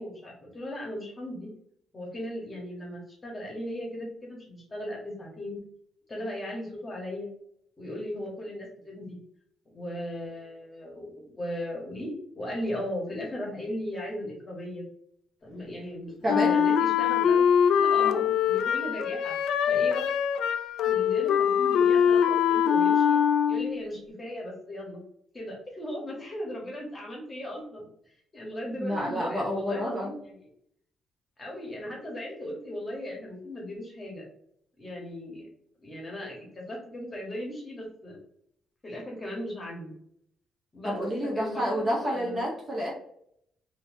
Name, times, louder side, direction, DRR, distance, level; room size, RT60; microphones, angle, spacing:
voice 1, 0.0-1.5 1.9-5.6 6.1-7.3 7.8-9.2 9.7-14.8 15.4-19.3 19.7-20.0 20.8-23.2 23.5-25.0 25.3-30.5 31.4-34.3 34.8-35.5 35.8-38.2 38.8-39.9 40.7-42.5, left 1 dB, 20° left, -1 dB, 1.1 m, -37 dB
voice 2, 16.2-16.6 18.0-18.3 28.8-30.1 40.8-42.9, equal, 20° right, -3 dB, 0.7 m, -29 dB
Wind instrument woodwind instrument, 16.3-23.8, left 8 dB, 85° left, 0.3 m, -23 dB
3.9 x 2.6 x 2.6 m, 0.71 s
cardioid pair, 175°, 0 cm